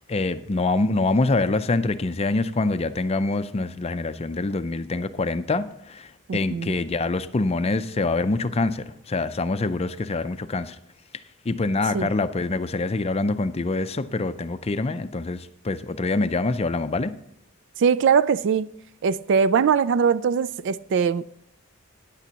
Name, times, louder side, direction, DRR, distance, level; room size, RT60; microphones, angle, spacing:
voice 1, 0.0-10.8 11.4-17.1, left 3 dB, 30° left, 0.5 m, -25 dB
voice 2, 6.3-6.8 11.9-12.1 17.8-18.7 19.0-21.3, right 6 dB, 55° right, 0.3 m, -21 dB
14.5 x 9.9 x 2.9 m
head